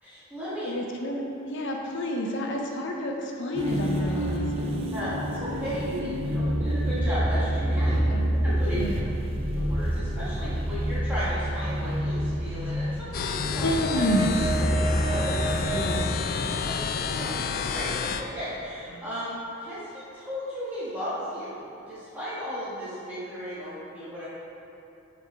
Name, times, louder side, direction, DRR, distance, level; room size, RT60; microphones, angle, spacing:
voice 1, 0.0-0.7 4.9-8.0 8.4-8.8 9.6-13.7 15.1-15.8 16.6-24.3, equal, 10° right, -12 dB, 1.4 m, -35 dB
voice 2, 0.6-4.8 8.1-8.3 8.7-9.1 13.6-14.3 15.7-16.1 18.9-19.0, equal, 65° left, 1 dB, 0.7 m, -29 dB
sound 1, 3.5-16.1, right 1 dB, 30° right, 0.6 m, -28 dB
sound 2, 4.5-10.5 10.7-10.8, left 1 dB, 85° right, 0.6 m, -38 dB
sound 3, 13.1-18.2, left 5 dB, 45° left, 0.3 m, -30 dB
6.8 x 4.2 x 5.2 m, 2.9 s
head